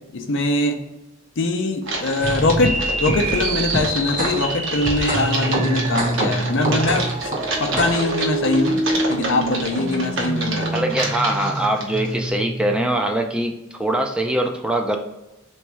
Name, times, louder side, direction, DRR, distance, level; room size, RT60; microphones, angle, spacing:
voice 1, 0.1-0.8 1.4-8.8 9.1-10.7, left 2 dB, 65° left, 5 dB, 0.6 m, -22 dB
Typing, 1.8-12.3, right 2 dB, 65° right, 1.0 m, -29 dB
sound 1, 2.2-13.0, right 1 dB, 40° right, 0.9 m, -26 dB
voice 2, 10.7-15.0, right 1 dB, 5° right, 3 dB, 0.4 m, -22 dB
3.5 x 3.1 x 4.5 m, 0.96 s
head